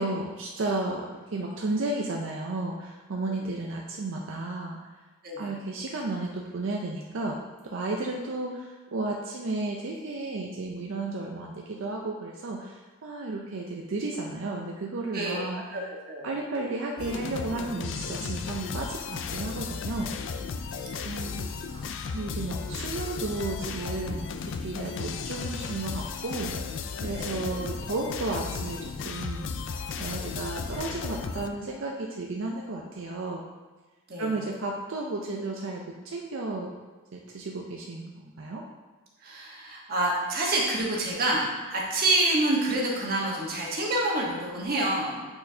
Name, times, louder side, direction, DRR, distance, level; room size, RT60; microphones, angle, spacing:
voice 1, 0.0-4.9 5.4-7.4 7.6-15.8 16.2-20.1 21.0-21.5 22.1-26.7 27.0-33.4 34.2-36.8 37.1-38.6, right 2 dB, 60° right, 0 dB, 0.5 m, -33 dB
sound 1, 17.0-31.5, left 5 dB, 55° left, 0.3 m, -35 dB
voice 2, 39.2-45.2, right 2 dB, 45° right, -3 dB, 1.2 m, -27 dB
8.6 x 4.3 x 2.7 m, 1.2 s
head